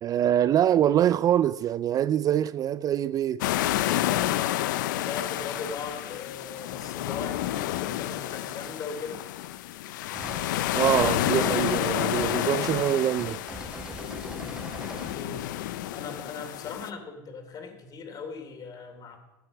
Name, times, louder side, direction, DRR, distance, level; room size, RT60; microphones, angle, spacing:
voice 1, 0.0-3.5 10.7-13.4, right 11 dB, 35° right, 0.3 m, -24 dB
sound 1, 3.4-16.9, left 14 dB, 80° left, 0.6 m, -30 dB
voice 2, 4.9-9.2 14.9-15.5 15.9-19.2, left 4 dB, 40° left, 2.9 m, -39 dB
sound 2, 10.1-10.5 10.8-12.4 12.7-12.9 13.2-15.2, right 1 dB, 10° right, 1.7 m, -41 dB
14.0 x 9.3 x 6.0 m
hypercardioid pair, 95°, 10 cm